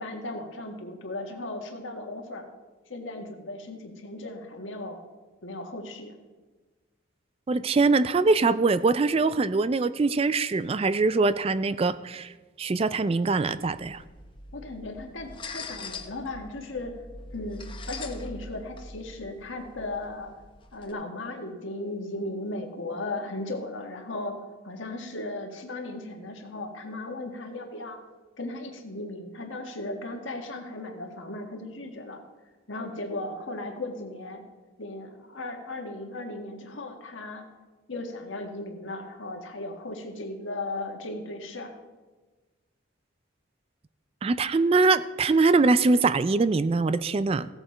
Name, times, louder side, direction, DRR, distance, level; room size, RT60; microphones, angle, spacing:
voice 1, 0.0-2.5 2.9-5.0 5.4-6.1 14.5-17.0 17.3-20.3 20.7-28.0 28.4-32.2 32.7-34.4 34.8-37.5 37.9-41.7, left 2 dB, 70° left, 4 dB, 1.6 m, -36 dB
voice 2, 7.5-12.3 12.6-14.0 44.2-47.5, right 3 dB, 30° right, 15 dB, 0.3 m, -23 dB
sound 1, 13.6-20.9, left 3 dB, 25° left, 0.8 m, -43 dB
16.0 x 8.1 x 4.5 m, 1.3 s
head